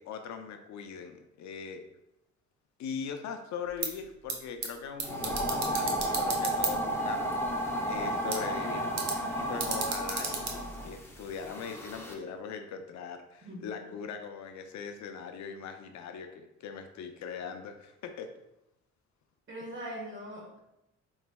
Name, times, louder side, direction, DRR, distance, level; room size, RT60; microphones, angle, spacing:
voice 1, 0.0-1.8 2.8-7.4 7.9-8.9 9.4-18.3, left 6 dB, 70° left, 6 dB, 0.5 m, -40 dB
sound 1, 3.6-11.5, right 4 dB, 65° right, 0.8 m, -38 dB
sound 2, 5.0-12.1, right 1 dB, 10° left, 0.6 m, -33 dB
voice 2, 19.5-20.6, equal, 40° right, -3 dB, 1.5 m, -41 dB
4.2 x 3.1 x 2.2 m, 0.87 s
cardioid pair, 90°, 30 cm